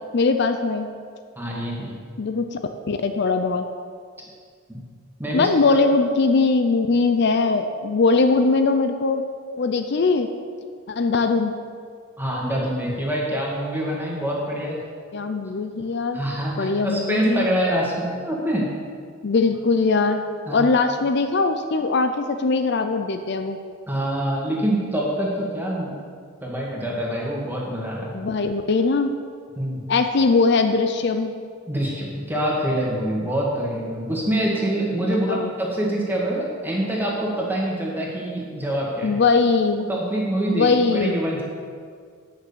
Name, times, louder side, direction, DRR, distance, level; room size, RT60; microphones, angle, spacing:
voice 1, 0.1-0.9 2.2-2.6 2.9-3.6 5.3-9.2 9.6-10.3 10.9-11.5 15.1-16.2 16.6-17.4 19.2-20.2 20.5-23.6 28.1-29.1 29.9-31.3 35.1-35.5 39.0-39.9 40.5-41.2, left 4 dB, 55° left, 7 dB, 0.5 m, -21 dB
voice 2, 1.4-1.9 4.7-4.8 5.2-5.8 12.2-14.8 16.1-18.7 20.5-20.7 23.9-25.9 26.4-28.1 29.6-29.8 31.7-39.2 39.9-41.4, right 1 dB, 10° right, -3 dB, 1.8 m, -25 dB
9.4 x 6.1 x 6.8 m, 2.1 s
head